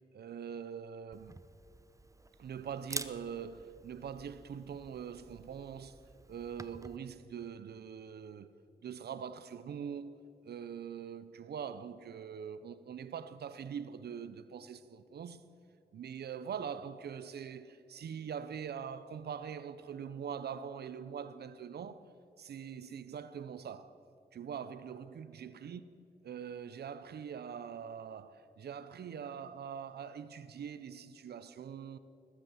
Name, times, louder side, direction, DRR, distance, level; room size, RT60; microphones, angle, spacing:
voice 1, 0.1-1.4 2.4-6.0 6.3-8.5 8.8-10.2 10.4-15.5 15.9-22.0 22.4-23.9 24.3-25.8 26.2-32.0, right 7 dB, 80° right, 0.6 m, -43 dB
Camera, 1.1-7.0, right 2 dB, 20° right, 0.7 m, -48 dB
19.5 x 8.3 x 7.6 m
cardioid pair, 60°, 16 cm